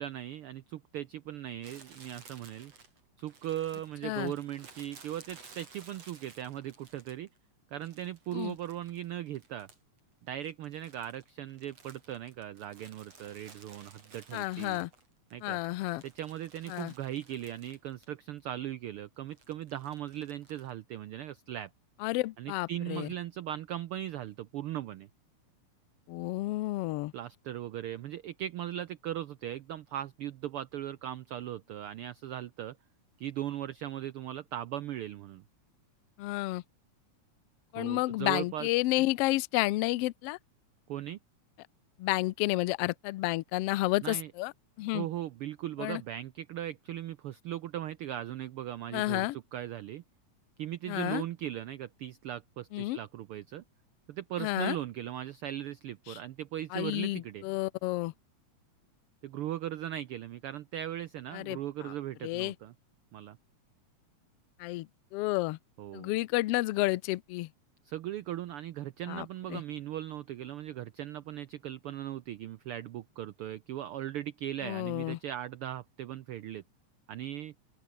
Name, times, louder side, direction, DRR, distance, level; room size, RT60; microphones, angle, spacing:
voice 1, 0.0-2.7 3.2-7.3 7.7-9.7 10.2-14.8 15.3-15.6 16.0-21.7 22.4-25.1 27.1-32.8 33.2-35.4 37.8-38.7 40.9-41.2 44.0-44.3 44.9-50.0 50.6-53.6 54.1-57.4 59.2-62.7 63.1-63.4 65.8-66.2 67.8-76.6 77.1-77.5, right 12 dB, 85° right, 1.2 m, -38 dB
Crumpling crinkling, 1.6-7.4 7.8-10.0 10.3-15.3 15.7-18.1 18.4-18.5 19.3-20.7, right 4 dB, 60° right, 5.8 m, -56 dB
voice 2, 14.3-14.9 15.4-16.0 16.7-16.9 22.0-23.1 26.1-27.1 36.2-36.6 37.7-40.4 42.0-44.5 44.8-45.1 45.8-46.0 48.9-49.4 50.9-51.2 52.7-53.0 54.4-54.8 56.1-56.2 56.7-58.1 61.3-61.9 62.2-62.5 64.6-65.6 65.9-67.5 69.1-69.6 74.6-75.2, left 19 dB, 80° left, 1.3 m, -31 dB
open air
omnidirectional pair, 3.4 m